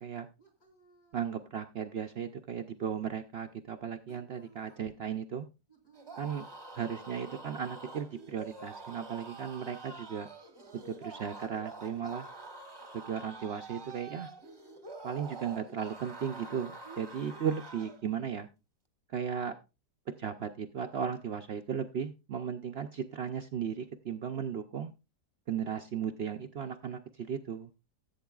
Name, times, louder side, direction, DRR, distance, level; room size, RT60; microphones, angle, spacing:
voice 1, 0.4-1.2 4.0-4.8 5.7-6.4 16.8-17.4 17.7-17.9, right 4 dB, 60° left, 3 dB, 3.7 m, -57 dB
voice 2, 1.1-5.5 6.2-6.5 6.7-10.3 10.7-12.3 12.9-14.3 15.0-18.5 19.1-19.6 20.2-24.9 25.5-27.7, right 7 dB, 75° right, 6 dB, 0.5 m, -36 dB
sound 1, 5.9-18.0, right 3 dB, 25° right, 0.6 m, -47 dB
15.5 x 8.0 x 2.3 m, 0.27 s
omnidirectional pair, 1.8 m